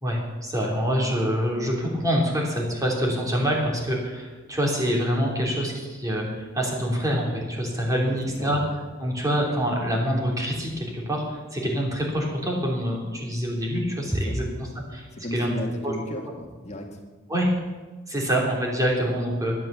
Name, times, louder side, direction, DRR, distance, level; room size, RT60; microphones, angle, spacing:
voice 1, 0.0-8.6 9.0-15.6 15.8-15.9 17.3-17.5 18.1-19.5, equal, 15° right, -2 dB, 3.2 m, -26 dB
voice 2, 8.1-8.5 14.1-14.4 15.1-17.0, left 1 dB, 35° left, 3 dB, 1.8 m, -35 dB
12.0 x 11.0 x 6.8 m, 1.3 s
head